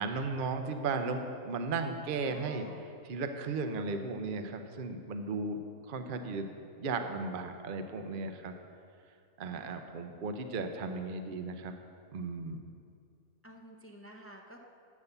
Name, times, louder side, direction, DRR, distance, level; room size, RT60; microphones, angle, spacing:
voice 1, 0.0-2.6 3.1-8.5 9.4-11.7 12.1-12.6, right 4 dB, 50° right, 6 dB, 0.6 m, -35 dB
voice 2, 2.3-2.9 9.5-9.8 13.4-14.6, equal, 20° left, 0 dB, 0.4 m, -51 dB
9.5 x 7.0 x 6.7 m, 2.4 s
omnidirectional pair, 1.5 m